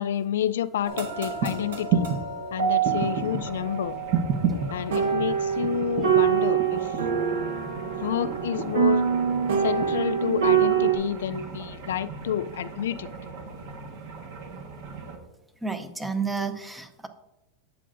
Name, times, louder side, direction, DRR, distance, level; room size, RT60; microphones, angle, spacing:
voice 1, 0.0-2.1 2.5-4.0 4.7-6.9 8.0-9.0 9.6-13.1, left 10 dB, 90° left, 13 dB, 0.3 m, -29 dB
sound 1, 0.8-10.9, right 7 dB, 90° right, 1.6 m, -26 dB
sound 2, 1.4-1.5 1.9-2.2 2.8-3.4 4.1-4.7 5.6-6.2 6.6-7.2 8.2-8.9 9.8-9.9, right 6 dB, 50° right, 1.0 m, -27 dB
sound 3, 2.8-15.2, right 4 dB, 65° right, 1.4 m, -41 dB
voice 2, 15.6-17.1, right 5 dB, 5° right, 9 dB, 0.6 m, -32 dB
11.5 x 7.5 x 2.6 m, 0.97 s
supercardioid pair, 145°, 0 cm